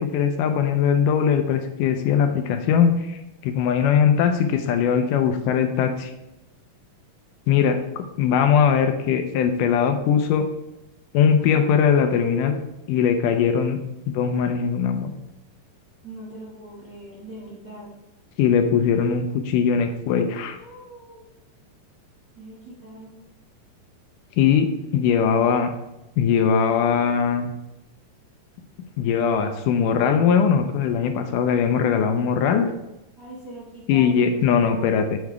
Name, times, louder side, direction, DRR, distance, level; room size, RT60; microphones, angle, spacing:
voice 1, 0.0-6.1 7.5-10.5 11.1-12.6 12.9-13.8 14.1-15.1 18.4-20.6 24.4-25.7 26.2-27.5 29.0-32.7 33.9-35.2, left 7 dB, 80° left, 7 dB, 2.1 m, -20 dB
voice 2, 16.0-17.9 20.5-21.3 22.3-23.2 33.2-34.9, right 1 dB, 35° right, -6 dB, 1.5 m, -42 dB
8.5 x 4.7 x 4.6 m, 0.94 s
omnidirectional pair, 3.8 m